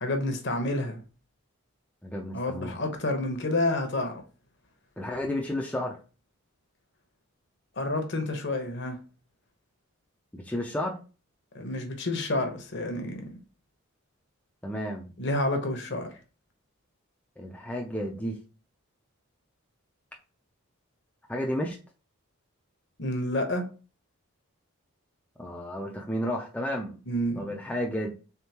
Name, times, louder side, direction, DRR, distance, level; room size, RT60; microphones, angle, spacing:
voice 1, 0.0-1.0 2.3-4.2 7.8-9.0 11.5-13.2 15.2-16.1 23.0-23.7 27.1-27.5, left 1 dB, 55° left, 5 dB, 0.9 m, -29 dB
voice 2, 2.0-2.7 5.0-6.0 10.3-11.0 14.6-15.1 17.4-18.4 21.3-21.8 25.4-27.0 27.4-28.1, left 1 dB, 5° left, -1 dB, 0.4 m, -32 dB
3.7 x 3.5 x 2.8 m, 0.34 s
head